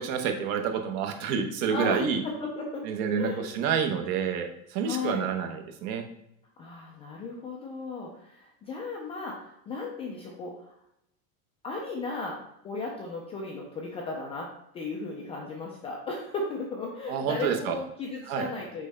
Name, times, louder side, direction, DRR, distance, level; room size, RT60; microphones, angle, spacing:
voice 1, 0.0-2.2 2.8-6.0 17.1-17.8 18.3-18.5, right 7 dB, 50° right, 5 dB, 1.1 m, -28 dB
voice 2, 1.7-2.8 3.2-3.5 4.8-5.3 6.6-10.8 11.6-14.5 14.7-18.9, left 3 dB, 15° left, -1 dB, 0.3 m, -35 dB
6.3 x 5.1 x 3.4 m, 0.79 s
supercardioid pair, 150°, 44 cm